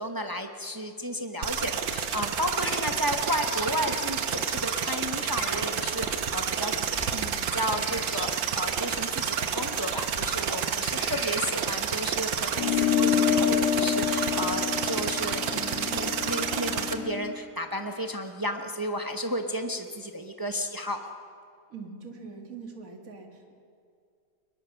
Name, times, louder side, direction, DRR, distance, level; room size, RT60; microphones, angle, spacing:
voice 1, 0.0-6.8 7.1-21.1, equal, 20° right, 5 dB, 0.5 m, -33 dB
sound 1, 1.4-16.9, right 8 dB, 85° right, 1.8 m, -30 dB
sound 2, 1.7-12.8, left 2 dB, 30° left, 2.4 m, -43 dB
sound 3, 12.6-17.4, left 9 dB, 75° left, 1.6 m, -27 dB
voice 2, 21.7-23.5, right 4 dB, 50° right, 3 dB, 2.4 m, -43 dB
22.5 x 21.0 x 5.8 m, 2.2 s
omnidirectional pair, 2.0 m